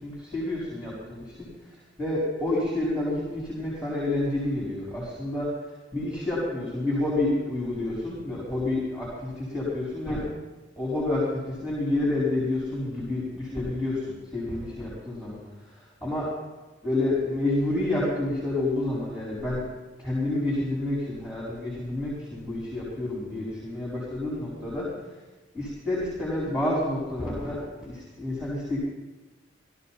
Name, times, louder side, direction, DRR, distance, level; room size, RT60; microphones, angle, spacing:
voice 1, 0.0-1.4 2.0-5.5 5.9-10.2 10.8-14.1 14.3-15.4 15.7-16.3 16.8-19.6 20.0-24.9 25.5-28.8, left 2 dB, 5° right, -9 dB, 4.5 m, -29 dB
17.0 x 13.5 x 4.2 m, 1.2 s
head